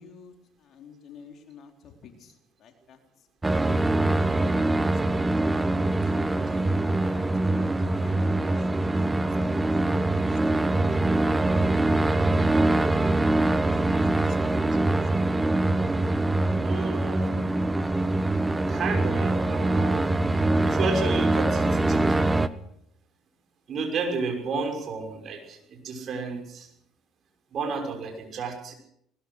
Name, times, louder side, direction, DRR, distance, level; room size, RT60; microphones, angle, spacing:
voice 1, 0.0-3.0 4.9-10.9 11.8-12.0 12.6-15.5 17.2-17.7, left 6 dB, 55° left, 4 dB, 4.1 m, -50 dB
sound 1, 3.4-22.5, right 2 dB, 15° right, 1.3 m, -23 dB
voice 2, 4.1-4.6 16.6-17.5 18.3-18.4 18.7-22.4 23.7-26.7 27.5-28.7, right 4 dB, 50° right, 4 dB, 6.3 m, -32 dB
20.5 x 19.5 x 6.4 m, 0.73 s
hypercardioid pair, 60°, 0 cm